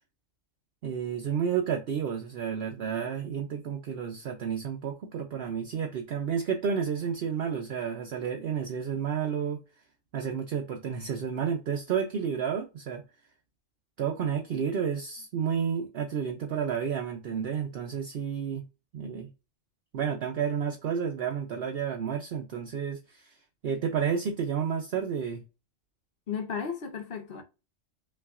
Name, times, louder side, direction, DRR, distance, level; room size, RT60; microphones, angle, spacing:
voice 1, 0.8-9.6 10.1-13.0 14.0-18.6 18.9-19.3 19.9-23.3 23.6-25.4, right 7 dB, 60° right, 0.8 m, -31 dB
voice 2, 26.3-27.4, left 6 dB, 55° left, 1.0 m, -34 dB
5.5 x 2.5 x 2.4 m
omnidirectional pair, 1.2 m